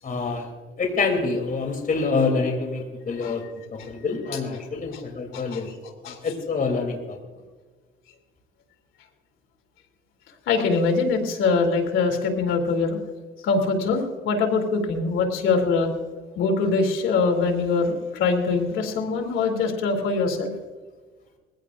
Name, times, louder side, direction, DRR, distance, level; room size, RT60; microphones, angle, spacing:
voice 1, 0.0-0.5 0.8-3.4 3.7-5.7 6.0-7.2, left 4 dB, 45° left, 2 dB, 3.1 m, -26 dB
voice 2, 10.5-13.0 13.4-15.9 16.4-20.5, left 4 dB, 90° left, 3 dB, 2.8 m, -23 dB
21.5 x 16.0 x 2.6 m, 1.3 s
cardioid pair, 90°, 20 cm